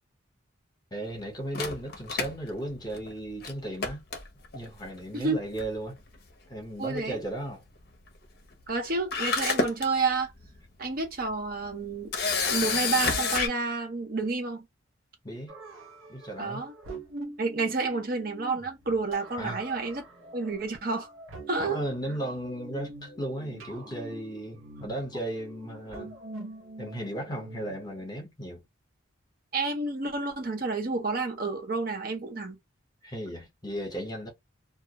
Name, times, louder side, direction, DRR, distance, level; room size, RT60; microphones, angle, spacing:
voice 1, 0.9-4.0 4.5-6.0 6.5-7.6 15.2-15.6 16.1-16.6 19.4-19.6 21.6-26.1 26.8-28.6 33.0-34.3, right 1 dB, 20° left, 0.8 m, -35 dB
Camera, 1.5-3.1 3.4-3.5 3.8-4.7 5.6-5.9 6.1-6.2 8.7-8.8 9.1-9.9 10.4-10.6 12.1-13.5, left 4 dB, 50° left, 0.5 m, -28 dB
voice 2, 6.8-7.2 8.7-10.3 10.8-12.1 12.5-14.6 16.4-16.7 17.4-20.0 20.3-21.1 21.5-21.8 29.5-32.6, right 3 dB, 45° right, 0.6 m, -30 dB
sound 1, 15.5-28.1, right 2 dB, 85° right, 0.7 m, -45 dB
2.3 x 2.0 x 2.7 m
head